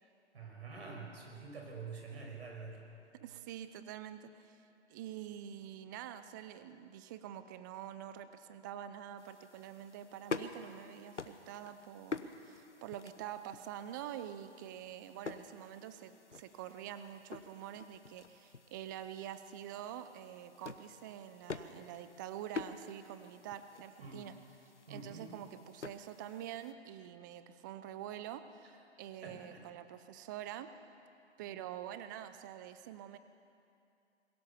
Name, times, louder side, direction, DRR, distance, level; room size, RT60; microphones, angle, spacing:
voice 1, 0.0-2.8 24.0-24.2 24.9-25.4 29.2-29.6, right 4 dB, 65° right, 1 dB, 5.9 m, -47 dB
voice 2, 3.2-24.4 24.9-30.7 31.4-33.2, right 11 dB, 15° right, 11 dB, 0.5 m, -46 dB
sound 1, 9.2-26.7, left 4 dB, 90° left, 1.2 m, -48 dB
21.5 x 17.5 x 7.0 m, 2.6 s
figure-of-eight pair, 135°, 35 cm